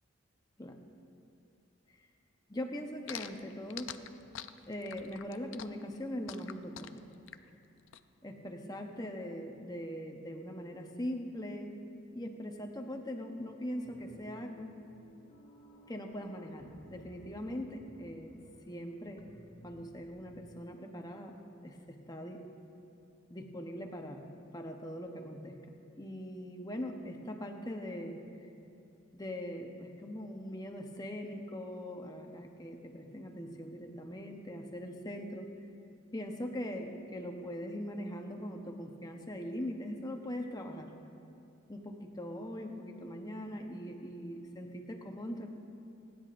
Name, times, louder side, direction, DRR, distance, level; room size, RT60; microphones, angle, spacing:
voice 1, 2.5-3.9 4.7-7.0 8.2-11.8 12.1-14.7 15.9-18.4 18.7-19.2 19.6-21.4 21.6-22.4 23.3-24.2 24.5-25.6 26.0-28.2 29.1-35.5 36.1-40.9 41.7-45.5, equal, 20° left, 3 dB, 0.9 m, -41 dB
sound 1, 3.1-8.0, left 10 dB, 65° left, 0.4 m, -45 dB
sound 2, 13.8-20.4, equal, 35° left, 1.7 m, -58 dB
29.5 x 10.5 x 2.5 m, 2.6 s
head